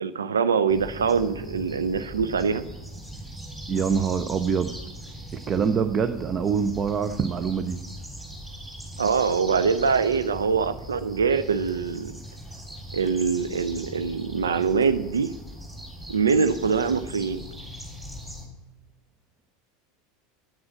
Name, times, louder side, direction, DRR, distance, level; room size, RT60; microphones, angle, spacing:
voice 1, 0.0-2.6 9.0-12.1 12.9-15.3 16.1-17.4, right 5 dB, 75° right, 11 dB, 0.5 m, -24 dB
sound 1, 0.7-18.5, right 1 dB, 10° right, 3.3 m, -40 dB
voice 2, 3.7-4.7 5.3-7.8, right 6 dB, 30° right, 10 dB, 0.6 m, -25 dB
9.5 x 8.9 x 6.1 m, 1.1 s
figure-of-eight pair, 80°, 0 cm